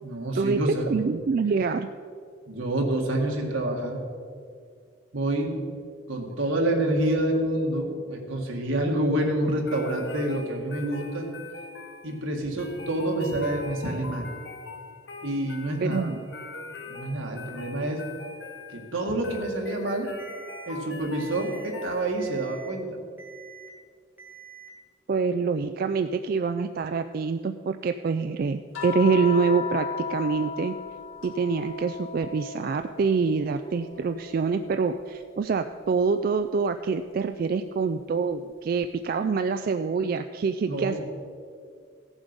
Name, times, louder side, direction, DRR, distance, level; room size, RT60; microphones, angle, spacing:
voice 1, 0.0-0.9 2.5-4.0 5.1-5.6 6.1-11.3 12.0-14.3 15.2-16.1 16.9-18.0 18.7-20.1 20.7-23.0 40.7-41.0, right 1 dB, 80° right, 1 dB, 1.9 m, -27 dB
voice 2, 0.9-1.9 15.8-16.2 25.1-30.7 31.2-41.0, right 5 dB, 45° right, 8 dB, 0.3 m, -26 dB
sound 1, 9.7-22.5, left 3 dB, 60° left, 1.0 m, -42 dB
Alarm, 20.2-20.7 21.2-21.7 22.2-22.7 23.2-23.7 24.2-24.7, right 8 dB, 10° right, 1.8 m, -47 dB
sound 2, 28.7-33.2 33.6-35.2 36.7-36.9, left 7 dB, 80° left, 2.0 m, -36 dB
16.0 x 7.2 x 5.2 m, 2.2 s
head